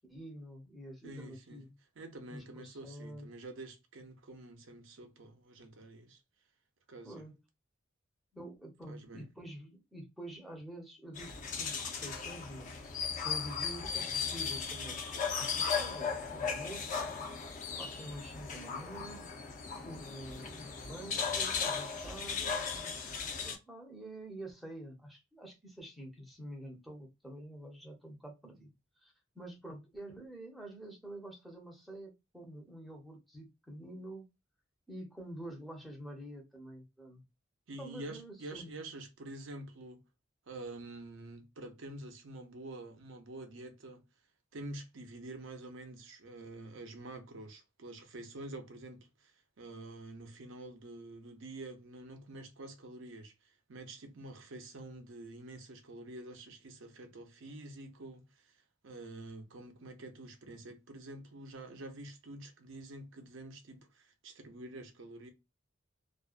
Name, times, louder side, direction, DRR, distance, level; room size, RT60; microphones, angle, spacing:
voice 1, 0.0-1.7 2.3-3.3 7.0-7.3 8.3-12.8 13.2-15.0 15.4-17.1 17.8-19.2 19.8-22.6 23.4-28.7 29.0-34.2 34.9-37.2 37.8-38.7, right 1 dB, ahead, 0.7 m, -47 dB
voice 2, 1.0-6.2 6.9-7.3 8.9-9.3 37.7-40.0 40.5-44.0 44.5-49.3 49.6-53.3 53.7-58.6 58.8-65.3, right 2 dB, 65° right, 0.6 m, -47 dB
sound 1, 11.1-23.6, left 6 dB, 40° left, 0.5 m, -37 dB
2.4 x 2.2 x 2.4 m
head